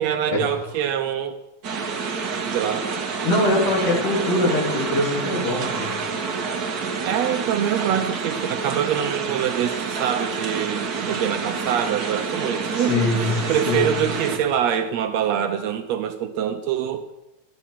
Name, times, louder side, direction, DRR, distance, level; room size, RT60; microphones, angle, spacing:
voice 1, 0.0-1.4 2.4-2.9 7.0-17.1, right 9 dB, 75° right, 7 dB, 1.6 m, -25 dB
sound 1, 1.6-14.4, right 5 dB, 55° right, 1.0 m, -28 dB
voice 2, 3.2-5.9 6.9-7.0 12.7-13.9, left 2 dB, 85° left, -3 dB, 5.0 m, -23 dB
13.0 x 10.0 x 5.7 m, 0.96 s
omnidirectional pair, 3.5 m